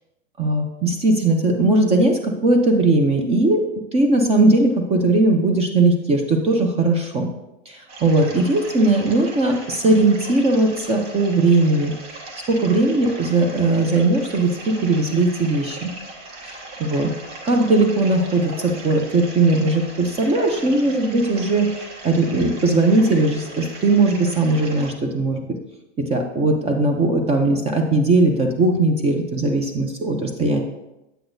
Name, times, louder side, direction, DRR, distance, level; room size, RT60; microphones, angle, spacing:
voice 1, 0.4-3.6 3.9-7.3 7.7-11.9 12.5-15.9 16.4-17.1 17.4-25.4 26.0-30.6, right 2 dB, 15° right, 3 dB, 0.4 m, -19 dB
sound 1, 7.9-24.9, right 2 dB, 50° right, 1.4 m, -38 dB
7.8 x 5.9 x 2.6 m, 0.93 s
hypercardioid pair, 130°, 39 cm